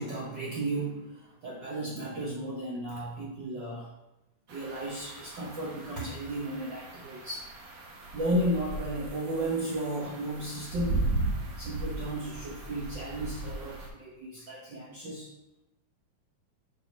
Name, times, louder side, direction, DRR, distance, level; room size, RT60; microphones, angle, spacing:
voice 1, 0.0-3.9 4.5-7.5 8.1-11.1 11.5-15.3, right 1 dB, 85° right, -4 dB, 1.0 m, -34 dB
sound 1, 4.5-13.9, right 2 dB, 60° right, 2.0 m, -37 dB
6.2 x 5.3 x 5.2 m, 0.93 s
omnidirectional pair, 3.6 m